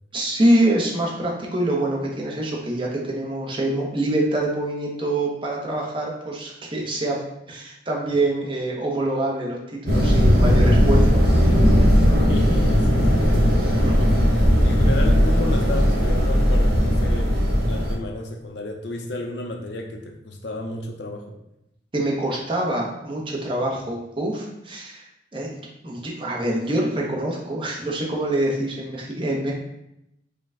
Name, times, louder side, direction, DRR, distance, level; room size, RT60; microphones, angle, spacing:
voice 1, 0.1-7.2 7.5-9.6 9.8-11.3 11.6-11.8 13.8-14.1 21.9-25.0 25.3-29.5, right 1 dB, 30° right, -3 dB, 0.8 m, -25 dB
sound 1, 9.8-17.9, equal, 60° right, 1.0 m, -17 dB
voice 2, 12.3-13.3 14.1-14.3 14.6-17.4 17.7-21.4, left 1 dB, 70° left, 3 dB, 0.6 m, -32 dB
4.9 x 2.2 x 3.6 m, 0.83 s
head